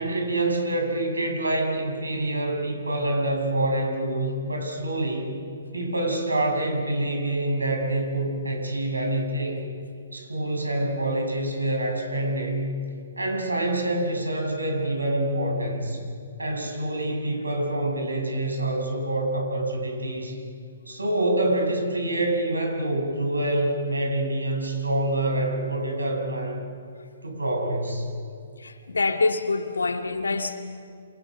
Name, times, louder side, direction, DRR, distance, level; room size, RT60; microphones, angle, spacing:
voice 1, 0.0-5.3 5.7-9.6 10.1-12.7 13.2-16.0 16.4-20.4 20.9-26.6 27.2-28.1, right 1 dB, 90° right, 2 dB, 7.3 m, -26 dB
voice 2, 28.6-30.6, left 3 dB, 80° left, 5 dB, 2.4 m, -25 dB
28.5 x 28.0 x 6.1 m, 2.3 s
figure-of-eight pair, 130°, 0 cm